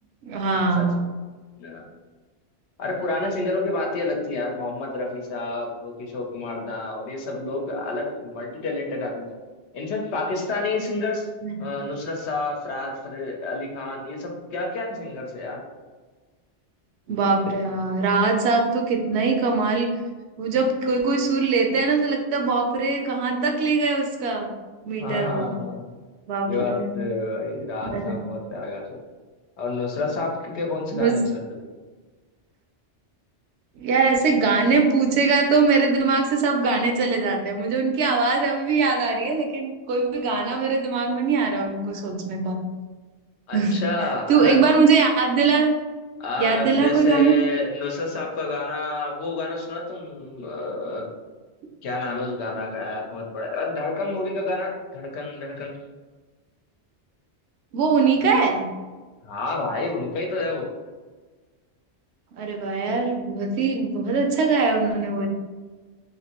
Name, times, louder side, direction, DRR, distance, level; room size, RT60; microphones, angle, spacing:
voice 1, 0.2-1.0 11.4-11.6 17.1-19.9 20.4-24.5 24.9-25.5 26.3-27.0 27.8-28.2 30.9-31.2 33.8-42.6 43.5-43.8 44.3-45.7 46.4-47.3 57.7-58.6 62.4-65.3, right 4 dB, 75° right, 3 dB, 0.8 m, -21 dB
voice 2, 2.8-9.4 9.7-11.3 11.6-15.6 25.0-25.9 26.5-29.0 29.6-31.4 43.5-44.6 46.2-51.0 51.8-55.8 59.2-60.7, left 3 dB, 75° left, 0 dB, 0.9 m, -29 dB
3.1 x 2.6 x 2.8 m, 1.3 s
omnidirectional pair, 1.2 m